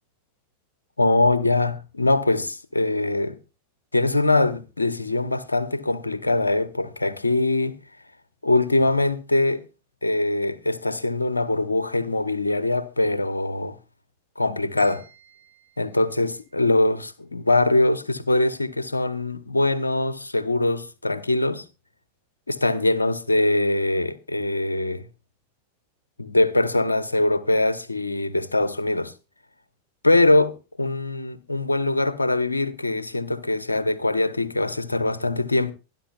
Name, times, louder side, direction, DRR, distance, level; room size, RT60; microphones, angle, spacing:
voice 1, 1.0-3.4 3.9-7.8 8.4-9.6 10.0-13.8 14.4-15.0 15.8-21.6 22.5-25.1 26.2-29.1 30.0-35.7, left 2 dB, 80° left, 0.9 m, -22 dB
sound 1, 14.8-17.0, right 4 dB, 85° right, 6.3 m, -53 dB
24.0 x 11.0 x 2.4 m
figure-of-eight pair, 90°, 0 cm